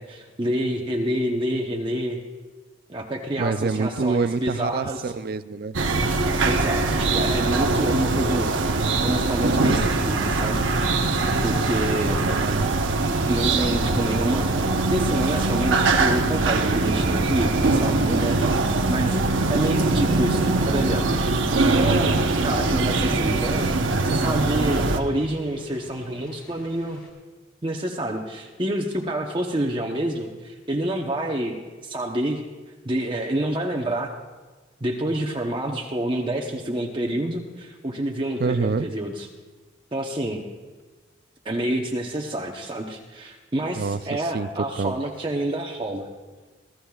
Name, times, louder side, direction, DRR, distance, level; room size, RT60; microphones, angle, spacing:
voice 1, 0.0-2.2 2.9-5.1 6.4-8.6 9.0-10.6 11.4-12.2 13.3-14.5 14.9-18.4 18.9-21.0 21.7-23.7 24.0-27.0 27.6-31.6 31.8-32.4 32.8-34.1 34.8-39.3 39.9-40.4 41.4-46.1, right 1 dB, 25° right, 0 dB, 0.9 m, -27 dB
voice 2, 3.4-5.8 12.3-12.7 38.4-38.9 43.7-44.5 44.8-44.9, right 4 dB, 50° right, 13 dB, 0.4 m, -26 dB
sound 1, 5.7-25.0, right 3 dB, 80° right, 1.0 m, -22 dB
sound 2, 14.6-27.1, equal, 25° left, 3.6 m, -43 dB
26.5 x 14.5 x 2.4 m, 1.3 s
head